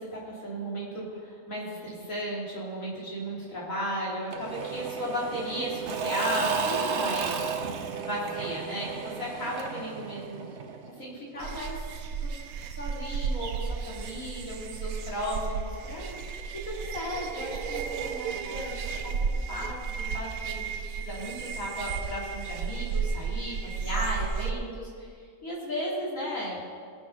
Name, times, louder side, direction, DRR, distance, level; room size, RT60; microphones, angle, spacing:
voice 1, 0.0-7.5 8.0-10.5 11.0-11.8 12.2-12.4 12.7-19.1 19.5-20.7 21.0-25.1 25.4-26.6, equal, 70° left, -5 dB, 3.5 m, -35 dB
Engine / Mechanisms / Drill, 4.3-11.0, right 6 dB, 55° right, 1.1 m, -33 dB
sound 1, 11.4-24.5, right 5 dB, 85° right, 1.2 m, -33 dB
19.0 x 6.4 x 5.8 m, 2.1 s
omnidirectional pair, 1.5 m